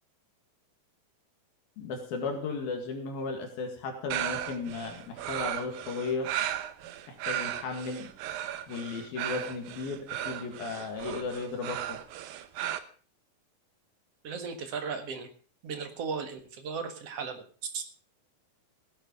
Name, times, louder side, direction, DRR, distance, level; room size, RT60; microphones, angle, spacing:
voice 1, 1.8-6.3 7.1-8.1 8.7-12.0, left 4 dB, 80° left, 3 dB, 3.9 m, -35 dB
sound 1, 4.1-12.8, right 12 dB, 80° right, 2.7 m, -36 dB
voice 2, 14.2-15.3 15.6-17.5 17.7-17.8, right 5 dB, 50° right, 7 dB, 2.4 m, -36 dB
16.5 x 10.0 x 5.4 m, 0.42 s
omnidirectional pair, 4.2 m